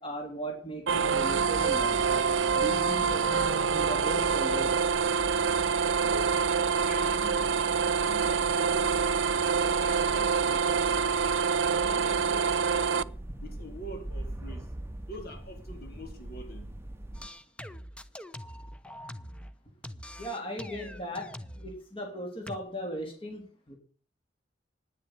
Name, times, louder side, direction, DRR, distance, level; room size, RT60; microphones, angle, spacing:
voice 1, 0.0-2.0 2.5-4.9 20.2-23.7, right 1 dB, 30° left, 3.5 m, -37 dB
sound 1, 0.9-17.3, right 1 dB, 15° right, 0.9 m, -42 dB
sound 2, 0.9-13.0, right 6 dB, 75° right, 0.6 m, -26 dB
voice 2, 5.8-6.6 6.9-7.6 8.0-9.2 9.6-11.4 11.7-13.1 13.4-14.7 15.1-16.7, equal, 55° left, 3.8 m, -44 dB
sound 3, 17.1-19.5 19.8-21.7 22.5-22.6, equal, 5° left, 0.8 m, -43 dB
10.5 x 10.0 x 9.2 m
head